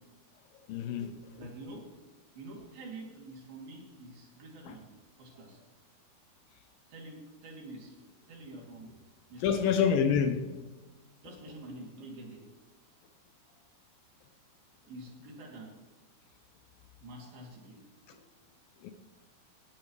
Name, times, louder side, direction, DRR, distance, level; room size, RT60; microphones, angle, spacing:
voice 1, 0.7-1.1 4.7-4.8 9.4-10.6 18.8-18.9, left 7 dB, 75° left, 2.3 m, -27 dB
voice 2, 1.4-1.9 2.3-5.6 6.9-9.8 11.2-12.4 14.9-15.8 17.0-17.8 18.1-18.2, right 2 dB, 70° right, 4.9 m, -47 dB
17.5 x 15.5 x 3.3 m
omnidirectional pair, 4.5 m